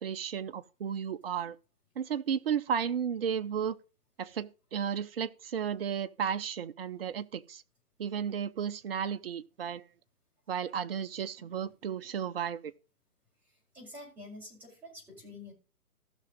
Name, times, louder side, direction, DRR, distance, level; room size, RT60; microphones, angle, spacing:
voice 1, 0.0-1.6 2.0-3.8 4.2-7.6 8.0-9.8 10.5-12.7, right 8 dB, 40° right, 0.6 m, -33 dB
voice 2, 13.7-15.5, left 1 dB, 5° right, 5.0 m, -48 dB
15.5 x 6.1 x 3.8 m
hypercardioid pair, 150°, 46 cm